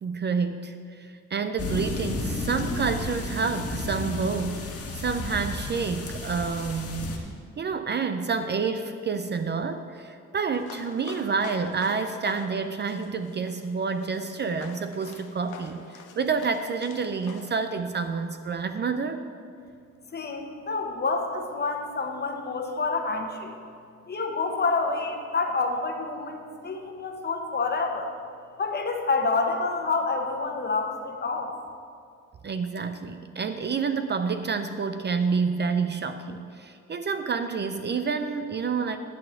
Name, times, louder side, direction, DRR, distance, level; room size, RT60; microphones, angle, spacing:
voice 1, 0.0-7.3 7.6-15.8 16.2-19.2 32.4-39.0, right 5 dB, 35° right, 9 dB, 0.5 m, -29 dB
sound 1, 1.6-7.2, left 2 dB, 50° left, 1.5 m, -33 dB
sound 2, 10.5-17.5, left 6 dB, 85° left, 0.9 m, -45 dB
voice 2, 20.1-23.5 24.1-28.1 28.6-31.5, left 3 dB, 35° left, 3 dB, 1.2 m, -28 dB
10.5 x 4.2 x 7.7 m, 2.3 s
cardioid pair, 90°, 30 cm